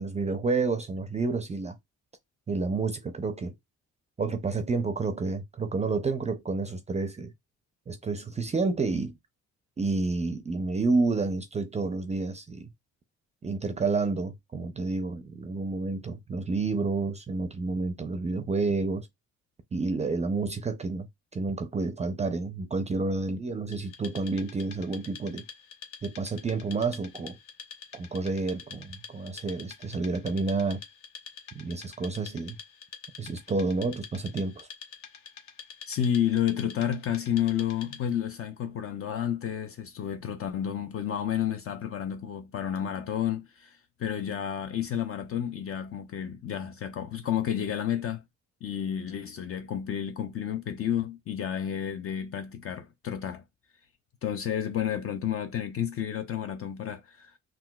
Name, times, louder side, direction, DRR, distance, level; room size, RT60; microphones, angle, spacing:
voice 1, 0.0-1.8 2.5-3.5 4.2-7.3 7.9-9.2 9.8-12.7 13.4-19.1 19.7-21.1 21.3-25.4 26.0-27.4 27.9-30.8 31.5-32.6 33.2-34.7, right 3 dB, 25° right, 0.4 m, -29 dB
Wood, 23.7-38.3, left 7 dB, 65° left, 0.8 m, -47 dB
voice 2, 35.9-48.2 48.6-53.4 54.2-57.4, left 9 dB, 50° left, 0.4 m, -31 dB
3.8 x 2.3 x 2.2 m
cardioid pair, 90°, 30 cm